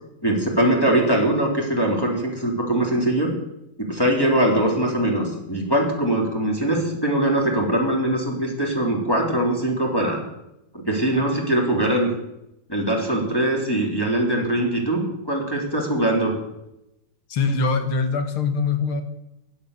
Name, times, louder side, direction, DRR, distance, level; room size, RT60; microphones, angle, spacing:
voice 1, 0.2-3.3 3.8-10.2 10.7-12.1 12.7-15.0 15.3-16.4, right 1 dB, 10° left, -1 dB, 3.5 m, -22 dB
voice 2, 17.3-19.0, left 4 dB, 90° left, 8 dB, 2.5 m, -23 dB
16.0 x 10.5 x 6.8 m, 0.88 s
omnidirectional pair, 2.3 m